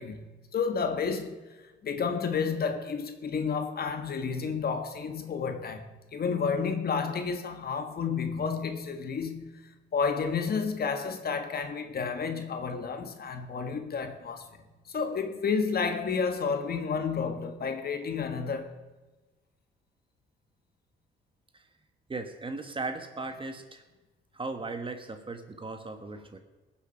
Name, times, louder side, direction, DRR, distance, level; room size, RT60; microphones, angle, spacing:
voice 1, 0.0-1.5 1.8-18.7, left 5 dB, 50° left, 1.6 m, -31 dB
voice 2, 22.1-23.8 24.3-26.4, right 3 dB, 25° right, 1.5 m, -37 dB
20.0 x 7.3 x 5.8 m
cardioid pair, 90°, 20 cm